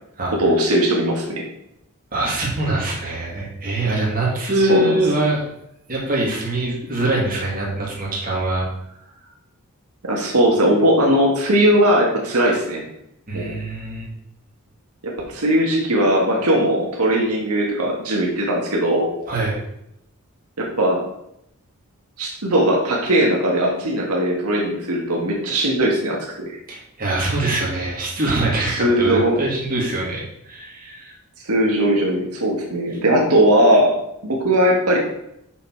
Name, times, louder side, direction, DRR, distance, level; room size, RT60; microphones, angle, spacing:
voice 1, 0.4-1.4 4.6-5.0 10.0-12.8 13.3-13.5 15.0-19.1 20.6-21.0 22.2-26.6 28.8-29.4 31.4-33.9 34.2-35.0, right 1 dB, 85° right, -1 dB, 1.6 m, -19 dB
voice 2, 2.1-5.4 5.9-8.7 13.3-14.1 19.3-19.6 26.7-31.1, right 2 dB, 40° right, -4 dB, 2.4 m, -23 dB
6.3 x 5.9 x 4.7 m, 0.78 s
head